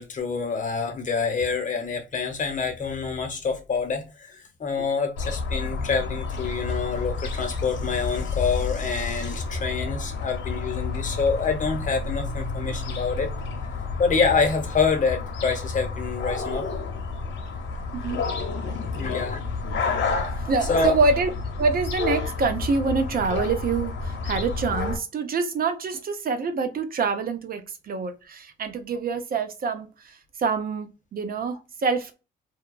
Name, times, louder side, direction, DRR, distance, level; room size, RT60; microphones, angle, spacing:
voice 1, 0.0-13.3 14.0-16.6 19.0-19.4 20.7-20.9, left 5 dB, 40° left, 0.9 m, -26 dB
sound 1, 5.2-25.0, left 4 dB, 70° left, 0.7 m, -30 dB
voice 2, 17.9-18.3 18.9-19.0 20.4-21.3 21.6-27.6 27.9-29.9 30.4-32.1, right 4 dB, 50° right, 0.6 m, -26 dB
2.7 x 2.3 x 2.2 m
cardioid pair, 90°, 20 cm